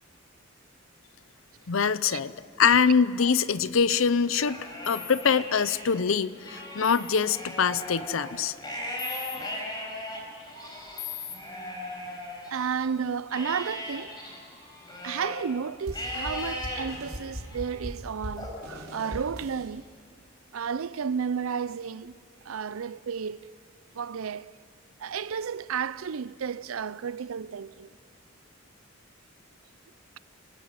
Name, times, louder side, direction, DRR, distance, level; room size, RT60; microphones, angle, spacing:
voice 1, 1.7-2.3 2.6-8.5, left 6 dB, 70° left, 0.7 m, -24 dB
Livestock farm animals working animals, 4.2-5.8 6.3-12.8 13.3-15.4 15.9-16.8 17.4-17.8 18.4-19.4, left 1 dB, 20° left, 5.4 m, -38 dB
sound 1, 4.8-5.2 6.8-7.2 9.0-9.4 11.0-11.4, left 10 dB, 45° left, 1.8 m, -38 dB
voice 2, 12.5-14.1 15.0-19.9 20.5-22.1 22.5-23.4 23.9-24.5 25.0-27.9, right 6 dB, 80° right, 0.5 m, -32 dB
sound 2, 15.9-19.7, equal, 50° right, 4.4 m, -40 dB
27.5 x 15.0 x 9.6 m
head